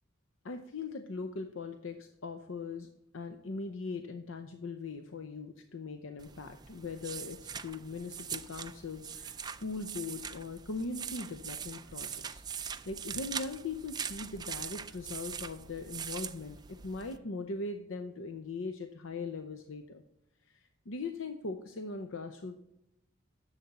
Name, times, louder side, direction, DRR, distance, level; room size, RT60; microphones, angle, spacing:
voice 1, 0.4-20.0 20.5-22.6, left 3 dB, 85° left, 7 dB, 0.7 m, -40 dB
sound 1, 6.2-17.2, right 7 dB, 20° right, 0.4 m, -42 dB
10.5 x 7.3 x 4.2 m, 0.84 s
head